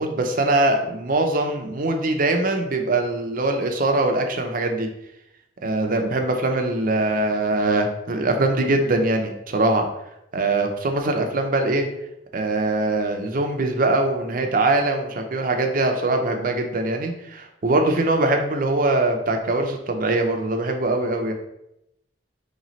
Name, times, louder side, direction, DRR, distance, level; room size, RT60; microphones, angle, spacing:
voice 1, 0.0-4.9 5.6-9.8 10.3-11.9 12.3-21.3, right 2 dB, 50° right, 4 dB, 0.6 m, -22 dB
3.2 x 3.1 x 4.0 m, 0.83 s
head